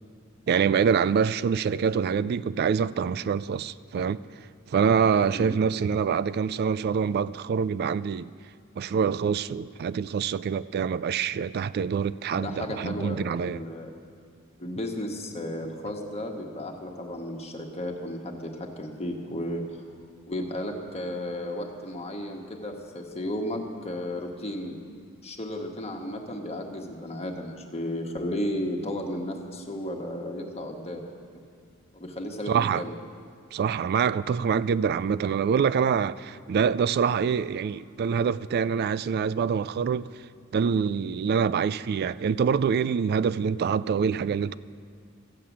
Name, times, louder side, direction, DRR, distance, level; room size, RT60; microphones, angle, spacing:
voice 1, 0.5-4.2 4.7-8.3 8.8-13.6 32.5-32.8 33.5-40.1 40.5-44.6, right 6 dB, 50° right, 0.3 m, -25 dB
voice 2, 12.3-13.9 14.6-19.8 20.3-24.8 25.2-31.0 31.3-31.4 31.9-32.9, left 1 dB, 30° left, 1.4 m, -34 dB
14.0 x 7.6 x 8.4 m
head